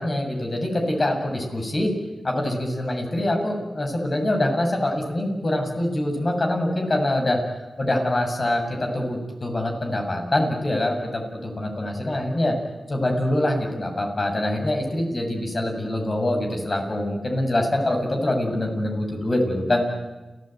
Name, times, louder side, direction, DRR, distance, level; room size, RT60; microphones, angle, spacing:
voice 1, 0.0-1.9 2.2-7.4 7.8-12.5 12.9-19.9, left 1 dB, 45° left, 2 dB, 7.2 m, -24 dB
30.0 x 15.5 x 9.2 m, 1.2 s
cardioid pair, 45°, 0 cm